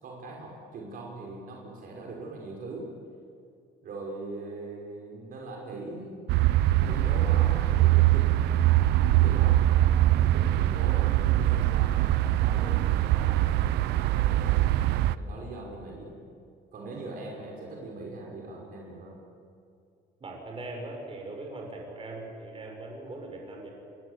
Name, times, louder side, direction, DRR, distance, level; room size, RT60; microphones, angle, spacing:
voice 1, 0.0-2.9 3.8-6.3 6.7-8.4 9.1-14.8 15.1-16.1 16.7-19.2, right 2 dB, 60° right, -1 dB, 5.7 m, -41 dB
sound 1, 6.3-15.1, right 14 dB, 85° right, 0.7 m, -23 dB
voice 2, 20.2-23.7, right 2 dB, 35° right, 1 dB, 6.7 m, -40 dB
27.5 x 21.0 x 8.4 m, 2.5 s
cardioid pair, 110°, 17 cm